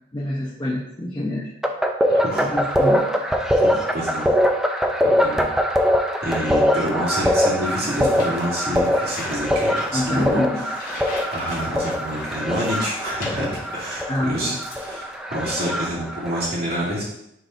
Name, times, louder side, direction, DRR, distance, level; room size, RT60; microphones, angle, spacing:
voice 1, 0.1-1.5 2.4-3.0 9.9-10.5 14.1-14.6, left 1 dB, 20° left, -5 dB, 0.8 m, -26 dB
sound 1, 1.6-16.4, equal, 5° right, 0.4 m, -22 dB
voice 2, 2.1-2.5 3.5-4.3 5.0-5.8 6.2-17.0, equal, 50° right, -6 dB, 2.4 m, -28 dB
sound 2, 7.6-14.0 14.3-15.3, left 2 dB, 45° left, 2.0 m, -39 dB
10.0 x 4.0 x 2.6 m, 0.80 s
head